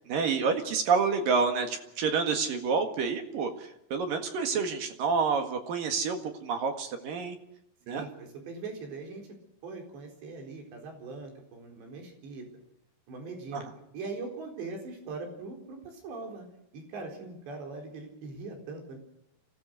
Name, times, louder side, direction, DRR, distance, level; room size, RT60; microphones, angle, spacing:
voice 1, 0.1-3.5 3.9-7.4 7.9-8.1 13.5-13.6, right 5 dB, 60° right, 5 dB, 3.2 m, -28 dB
voice 2, 7.9-9.3 9.6-12.5 13.1-13.7 13.9-16.5 16.7-19.0, right 3 dB, 90° right, 2 dB, 6.5 m, -41 dB
26.0 x 17.0 x 6.5 m, 0.81 s
omnidirectional pair, 4.9 m